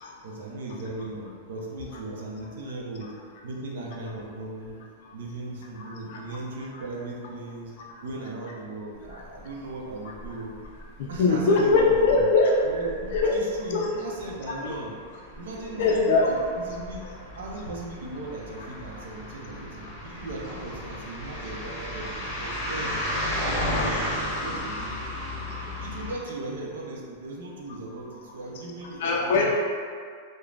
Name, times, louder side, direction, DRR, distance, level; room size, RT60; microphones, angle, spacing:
voice 1, 0.2-3.1 3.4-4.8 5.1-7.7 8.0-10.6 11.1-12.3 12.6-15.0 15.4-16.4 16.7-17.0 17.4-23.0 23.4-25.0 25.8-29.4, right 2 dB, 80° right, -3 dB, 0.5 m, -37 dB
voice 2, 5.8-6.2 7.8-8.0 11.0-12.5 13.1-13.3 13.7-14.0 14.5-14.6 15.8-16.3 29.0-29.5, left 3 dB, 60° left, -2 dB, 0.4 m, -22 dB
sound 1, 9.0-9.4 9.7-10.8 11.1-11.4 11.7-26.1, left 1 dB, 25° left, 1.0 m, -34 dB
3.2 x 2.1 x 2.4 m, 2.1 s
supercardioid pair, 145°, 0 cm